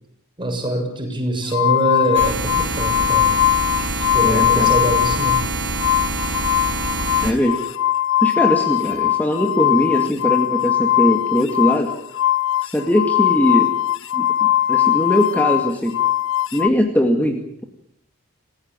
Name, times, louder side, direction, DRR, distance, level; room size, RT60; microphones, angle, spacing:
voice 1, 0.4-3.4 4.1-5.4, right 1 dB, 20° right, 3 dB, 6.9 m, -23 dB
sound 1, 1.5-5.5 5.7-16.7, left 13 dB, 60° left, 1.2 m, -20 dB
sound 2, 2.1-7.3, right 3 dB, 55° right, 5.3 m, -25 dB
voice 2, 4.2-4.7 7.2-7.6 8.2-11.9 12.6-13.7 14.1-16.0 16.5-17.6, equal, 10° left, 3 dB, 2.2 m, -20 dB
29.0 x 16.0 x 9.0 m, 0.73 s
head